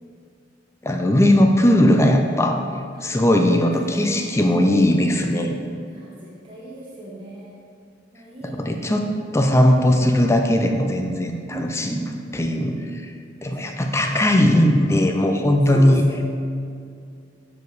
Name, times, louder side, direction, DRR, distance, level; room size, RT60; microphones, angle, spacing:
voice 1, 0.8-2.6 3.0-5.6 8.4-9.1 9.3-12.0 12.3-13.1 13.4-16.0, left 1 dB, 15° left, 4 dB, 0.5 m, -18 dB
voice 2, 3.6-4.6 5.9-7.6 8.1-9.0 11.5-12.6 14.0-14.1 15.3-16.2, right 1 dB, 30° right, -6 dB, 1.0 m, -38 dB
6.9 x 4.9 x 4.7 m, 2.3 s
head